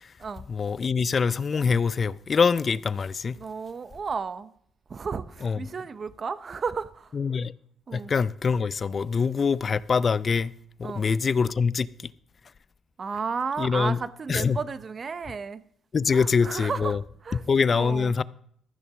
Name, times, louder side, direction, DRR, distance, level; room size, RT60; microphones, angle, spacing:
voice 1, 0.5-3.4 5.4-5.6 7.1-7.5 7.9-10.5 10.8-11.9 13.6-14.0 14.3-14.6 15.9-17.0 17.3-18.2, left 5 dB, 40° left, 0.4 m, -24 dB
voice 2, 3.4-4.5 4.9-7.1 7.9-8.1 10.8-11.0 13.0-15.6 16.1-17.4 17.7-18.1, right 5 dB, 40° right, 0.8 m, -33 dB
14.0 x 7.1 x 6.1 m
cardioid pair, 90°, 0 cm